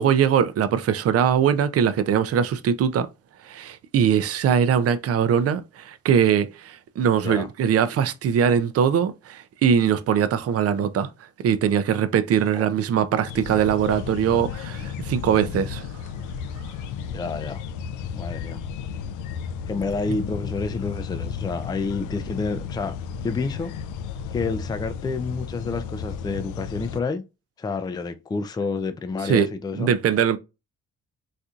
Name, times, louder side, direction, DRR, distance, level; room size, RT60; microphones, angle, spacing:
voice 1, 0.0-3.1 3.5-11.1 11.4-15.9 29.2-29.5 29.8-30.4, right 8 dB, 50° right, 0.5 m, -21 dB
sound 1, 13.3-27.0, left 7 dB, 85° left, 0.5 m, -33 dB
voice 2, 17.1-17.6 18.1-18.6 19.7-23.0 23.2-23.7 24.3-27.2 27.6-29.9, left 4 dB, 15° left, 0.4 m, -29 dB
4.2 x 2.5 x 2.4 m
cardioid pair, 90°, 30 cm